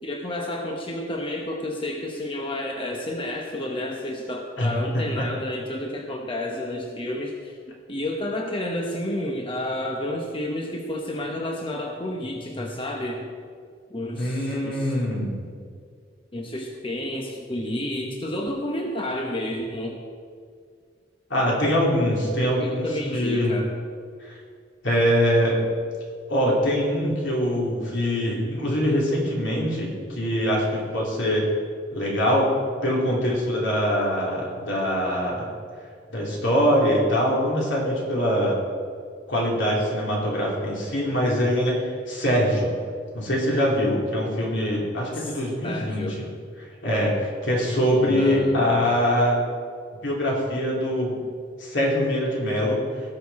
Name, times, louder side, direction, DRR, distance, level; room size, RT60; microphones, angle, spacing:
voice 1, 0.0-13.3 13.9-14.9 16.3-20.0 22.4-23.7 45.1-45.3 45.6-46.2 48.0-48.7, left 1 dB, 30° left, 1 dB, 0.9 m, -30 dB
voice 2, 4.6-5.2 14.1-15.5 21.3-22.9 23.1-23.5 24.2-24.4 24.8-25.6 26.3-31.4 31.9-32.5 32.8-35.5 36.1-38.6 39.3-41.7 42.1-42.7 43.1-46.0 46.8-49.4 50.0-51.2 51.6-52.8, equal, 80° left, -3 dB, 3.2 m, -23 dB
18.0 x 6.7 x 4.2 m, 2.1 s
head